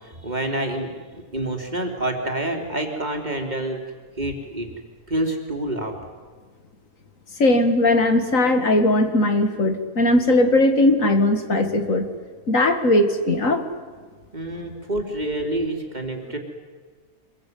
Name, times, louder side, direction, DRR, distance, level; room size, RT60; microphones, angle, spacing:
voice 1, 0.0-3.8 4.2-4.7 5.1-6.0 14.3-16.4, right 1 dB, 30° right, 3 dB, 3.4 m, -27 dB
voice 2, 7.4-12.1 12.5-13.6, left 1 dB, 60° left, 7 dB, 2.4 m, -19 dB
26.0 x 22.0 x 9.4 m, 1.4 s
omnidirectional pair, 1.5 m